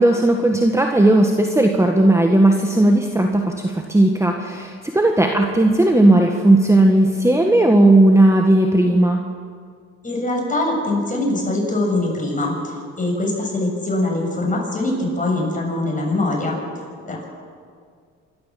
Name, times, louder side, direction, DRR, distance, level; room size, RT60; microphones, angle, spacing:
voice 1, 0.0-9.2, right 1 dB, 10° right, 3 dB, 1.6 m, -15 dB
voice 2, 10.0-16.6 17.1-17.2, left 2 dB, 25° left, -1 dB, 7.4 m, -23 dB
26.5 x 13.0 x 7.5 m, 2.1 s
cardioid pair, 90°, 30 cm